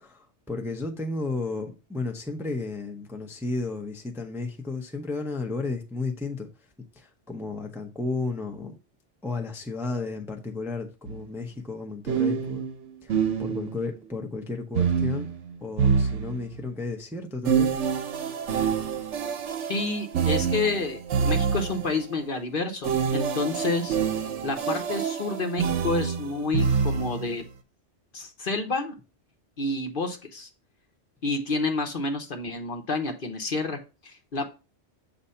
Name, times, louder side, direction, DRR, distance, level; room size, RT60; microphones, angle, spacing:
voice 1, 0.0-6.5 6.9-8.8 9.2-12.7 13.0-15.3 15.6-17.7, left 3 dB, 5° right, 0.6 m, -33 dB
sound 1, 11.1-11.2 12.1-13.9 14.8-16.7 17.5-22.0 22.8-27.3, right 6 dB, 80° right, 1.1 m, -26 dB
voice 2, 19.7-24.0 24.4-27.5 28.1-28.9 29.6-30.5 31.2-34.5, left 3 dB, 50° left, 1.0 m, -29 dB
7.4 x 2.7 x 5.5 m
omnidirectional pair, 1.2 m